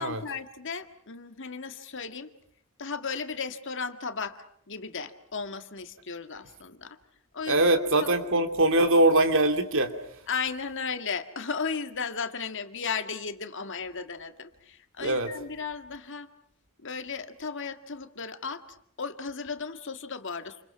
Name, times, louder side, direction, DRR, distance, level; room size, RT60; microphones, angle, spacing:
voice 1, 0.0-2.3 2.8-7.0 7.3-7.6 8.0-8.1 10.3-16.3 16.8-20.6, left 5 dB, 60° left, 8 dB, 1.9 m, -35 dB
voice 2, 7.5-9.9 15.0-15.3, right 2 dB, 60° right, 7 dB, 2.8 m, -22 dB
29.0 x 28.5 x 5.9 m, 0.68 s
head